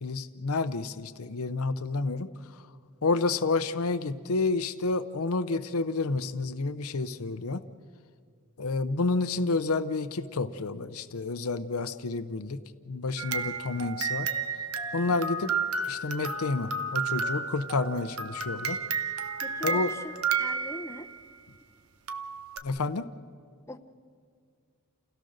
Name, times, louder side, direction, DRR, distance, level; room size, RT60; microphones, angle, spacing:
voice 1, 0.0-2.3 3.0-7.6 8.6-12.6 12.9-14.3 14.9-15.5 15.8-18.8 19.6-19.9 22.6-23.0, left 3 dB, 75° left, 12 dB, 0.7 m, -29 dB
sound 1, 13.2-21.2 22.1-22.6, right 4 dB, 80° right, 1.1 m, -32 dB
voice 2, 19.4-20.1 20.4-21.1 23.7-23.8, left 1 dB, 15° left, 9 dB, 0.7 m, -41 dB
29.0 x 17.0 x 6.5 m, 2.2 s
head